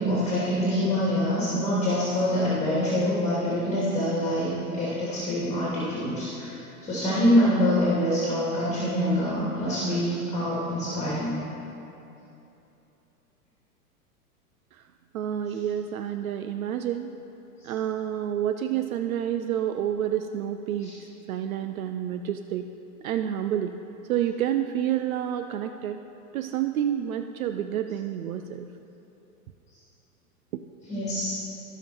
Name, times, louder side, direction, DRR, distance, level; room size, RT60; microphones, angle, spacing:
voice 1, 0.0-6.6 6.8-11.4 17.6-17.7 20.8-20.9 30.9-31.4, equal, 15° left, -8 dB, 2.7 m, -25 dB
voice 2, 15.1-17.1 17.6-20.9 21.3-22.7 23.0-23.7 24.1-26.0 26.3-28.7 30.5-30.6, right 10 dB, 65° right, 8 dB, 0.6 m, -29 dB
17.5 x 5.9 x 4.5 m, 2.9 s
hypercardioid pair, 110°, 46 cm